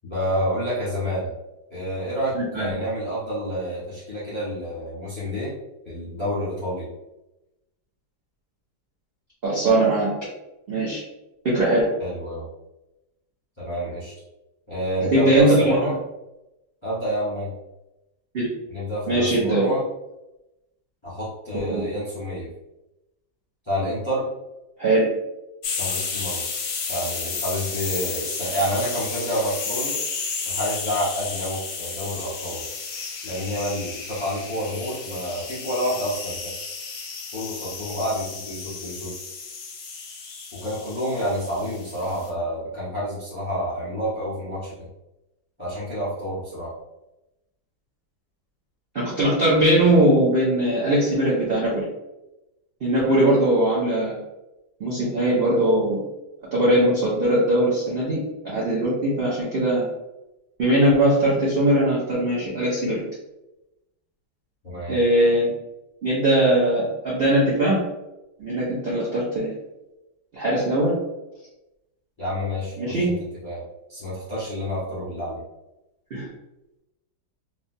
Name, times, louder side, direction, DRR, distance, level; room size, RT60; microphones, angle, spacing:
voice 1, 0.0-1.3 1.7-5.5 5.8-6.9 12.0-12.5 13.6-14.1 14.7-15.9 16.8-17.5 18.7-19.8 21.0-22.5 23.6-24.3 25.8-26.4 26.9-30.0 30.4-32.6 33.2-36.5 37.3-39.1 40.5-44.8 45.6-46.7 64.6-65.0 72.2-73.1 73.4-73.6 73.9-75.4, equal, 20° left, -10 dB, 0.8 m, -29 dB
voice 2, 2.3-2.7 9.4-10.1 10.7-11.0 11.4-11.9 15.1-15.6 15.9-16.0 18.3-18.5 19.1-19.7 21.5-21.8 24.8-25.1 48.9-51.8 52.8-54.2 54.8-56.0 56.5-58.2 58.4-59.8 60.6-63.0 64.9-65.5 66.0-67.8 68.4-69.6 70.3-70.9 72.8-73.1 76.1-76.3, right 1 dB, 70° right, -8 dB, 0.5 m, -20 dB
sound 1, 25.6-42.3, left 5 dB, 65° left, 0.9 m, -32 dB
3.2 x 2.3 x 2.6 m, 0.95 s
omnidirectional pair, 2.0 m